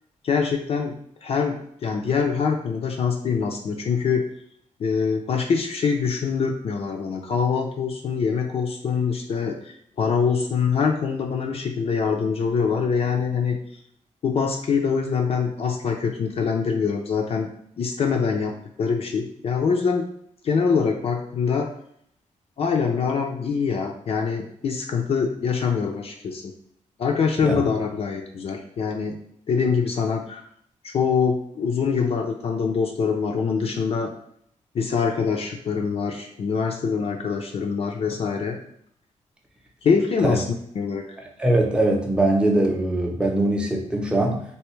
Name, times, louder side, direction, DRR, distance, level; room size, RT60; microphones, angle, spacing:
voice 1, 0.2-0.9 1.2-4.3 4.8-13.6 14.2-17.5 17.8-20.1 20.4-21.7 22.6-26.5 27.0-29.2 29.5-30.4 30.8-34.1 34.7-38.6 39.8-40.4 40.8-41.2, left 5 dB, 50° left, 2 dB, 0.4 m, -24 dB
voice 2, 41.4-44.4, right 1 dB, 10° right, 1 dB, 0.6 m, -21 dB
3.3 x 2.7 x 3.1 m, 0.68 s
wide cardioid pair, 135°, 13 cm